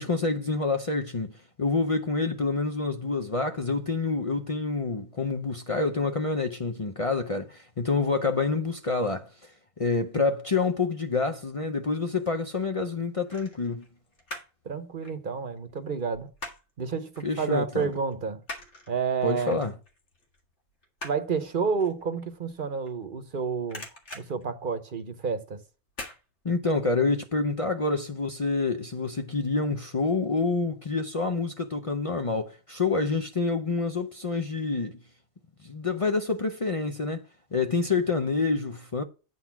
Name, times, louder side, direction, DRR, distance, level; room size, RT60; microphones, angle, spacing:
voice 1, 0.0-1.3 1.6-9.5 9.8-13.9 17.2-17.9 19.2-19.7 26.4-34.9 35.6-37.2 37.5-39.0, left 3 dB, 35° left, 0.6 m, -27 dB
sound 1, 11.8-12.4 13.3-14.6 14.9-16.8 17.2-17.3 17.7-23.3 23.6-25.3 25.9-26.2 26.6-26.7, left 1 dB, 85° left, 2.2 m, -43 dB
voice 2, 14.6-16.3 16.8-18.4 18.9-19.6 21.0-25.6, right 5 dB, 50° right, 1.0 m, -30 dB
9.1 x 4.0 x 5.8 m
omnidirectional pair, 1.2 m